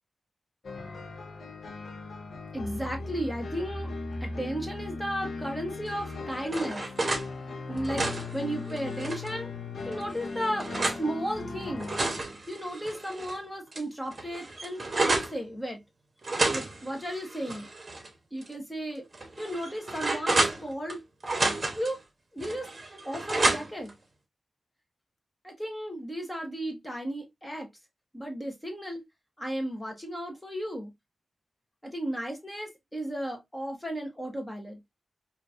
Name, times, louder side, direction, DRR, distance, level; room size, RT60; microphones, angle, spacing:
sound 1, 0.6-12.2, left 3 dB, 75° left, 0.9 m, -38 dB
voice 1, 2.5-3.9 4.2-6.9 7.7-9.5 9.9-11.9 12.5-15.8 16.5-17.7 18.3-19.1 19.4-21.0 21.7-22.0 22.3-22.7 23.0-23.9 25.4-27.7 28.1-29.0 29.4-30.9 31.8-34.8, equal, 10° left, 1.2 m, -34 dB
sound 2, 6.0-7.3 7.7-9.3 9.9-11.0 11.6-13.4 13.7-13.8 14.1-15.4 16.2-18.1 18.4-18.5 19.1-21.0 21.2-21.9 22.4-23.9, right 2 dB, 35° right, 1.0 m, -30 dB
5.0 x 2.6 x 2.4 m
wide cardioid pair, 160°, 0 cm